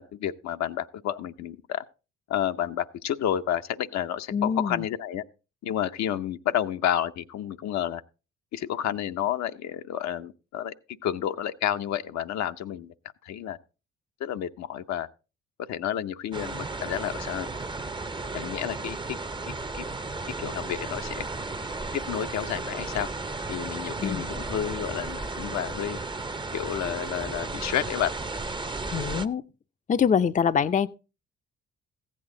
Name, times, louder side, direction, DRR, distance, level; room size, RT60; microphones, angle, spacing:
voice 1, 0.0-1.8 2.3-5.2 5.6-8.0 8.5-10.7 11.0-12.9 13.2-13.6 14.2-15.1 15.7-17.5 18.3-19.2 19.5-19.8 20.4-21.2 21.9-23.1 23.5-26.0 26.5-28.1, left 10 dB, 70° left, 0.7 m, -30 dB
voice 2, 4.3-4.8 24.0-24.3 28.9-29.4 29.9-30.9, left 7 dB, 25° left, 0.5 m, -24 dB
sound 1, 16.3-29.3, right 3 dB, 15° right, 0.6 m, -34 dB
15.0 x 8.5 x 3.8 m
supercardioid pair, 55°, 29 cm